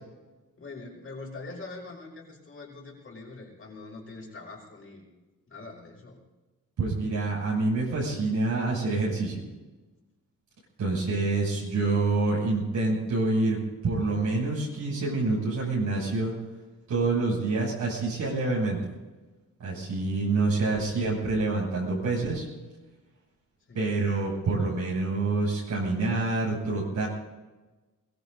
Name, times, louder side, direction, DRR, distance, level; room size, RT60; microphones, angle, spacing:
voice 1, 0.6-5.0 5.5-6.2 23.7-23.8, left 3 dB, 40° left, 0 dB, 6.1 m, -43 dB
voice 2, 6.8-9.4 10.8-13.6 13.8-16.3 16.9-18.8 19.6-22.4 23.7-27.1, right 3 dB, 60° right, -5 dB, 7.0 m, -27 dB
23.0 x 23.0 x 2.7 m, 1.2 s
wide cardioid pair, 145°, 34 cm